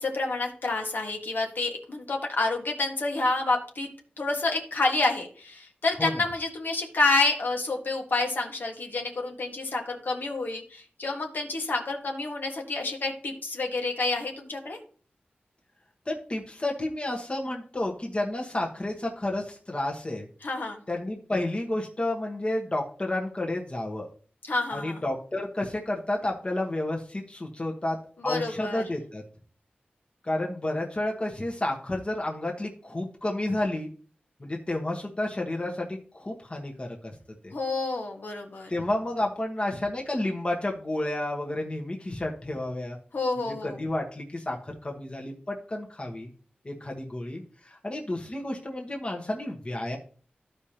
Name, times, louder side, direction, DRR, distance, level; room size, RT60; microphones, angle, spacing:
voice 1, 0.0-3.9 4.2-14.8 20.4-20.8 24.5-25.0 28.2-28.8 37.5-38.7 43.1-43.8, left 3 dB, 70° left, 1 dB, 1.5 m, -28 dB
voice 2, 16.1-20.3 20.9-24.1 24.7-28.0 28.2-29.2 30.2-33.9 34.4-37.2 37.4-37.5 38.7-43.0 43.6-46.3 46.6-50.0, left 1 dB, 30° left, 0 dB, 1.3 m, -31 dB
14.0 x 5.0 x 2.9 m, 0.43 s
wide cardioid pair, 95°, 3 cm